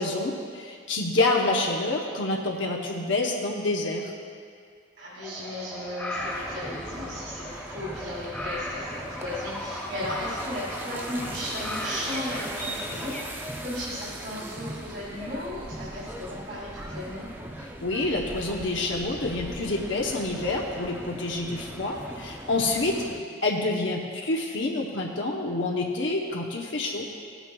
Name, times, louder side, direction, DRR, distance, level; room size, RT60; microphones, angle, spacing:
voice 1, 0.0-4.1 17.8-22.9 23.4-27.1, left 2 dB, 70° left, -1 dB, 0.8 m, -27 dB
voice 2, 5.0-17.3 22.8-23.2, left 1 dB, 55° right, -8 dB, 2.4 m, -36 dB
sound 1, 5.2-13.2, left 1 dB, 5° left, 1.2 m, -37 dB
sound 2, 6.1-23.2, right 1 dB, 10° right, 0.4 m, -39 dB
16.0 x 9.0 x 2.3 m, 2.2 s
head